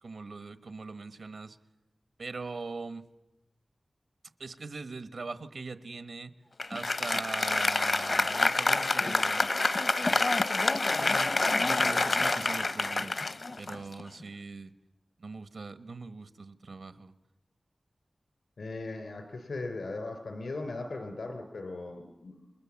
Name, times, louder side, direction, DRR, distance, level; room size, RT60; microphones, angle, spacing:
voice 1, 0.0-1.6 2.2-3.1 4.4-6.3 6.7-9.5 10.0-10.3 11.0-11.3 11.6-13.2 13.6-14.7 15.2-17.1, right 4 dB, 80° right, 11 dB, 1.3 m, -41 dB
Applause, 6.6-14.2, left 3 dB, 55° left, 0.8 m, -27 dB
voice 2, 18.6-22.5, left 2 dB, 80° left, 6 dB, 3.5 m, -38 dB
29.5 x 21.5 x 7.2 m, 0.98 s
wide cardioid pair, 75°, 0 cm